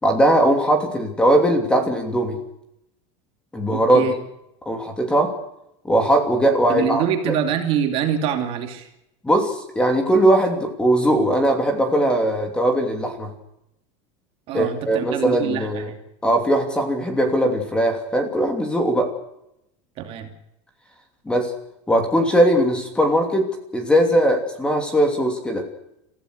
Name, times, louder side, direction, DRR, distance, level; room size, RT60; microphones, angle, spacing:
voice 1, 0.0-2.4 3.5-4.0 4.6-5.3 5.8-7.0 9.2-13.3 14.5-15.9 16.2-19.1 21.3-21.5 21.9-23.5 23.7-25.6, right 1 dB, 5° left, 4 dB, 2.9 m, -19 dB
voice 2, 3.7-4.1 6.7-8.9 14.5-16.0 20.0-20.3, right 9 dB, 40° right, 4 dB, 2.7 m, -25 dB
28.5 x 15.5 x 6.6 m, 0.82 s
cardioid pair, 170°, 15 cm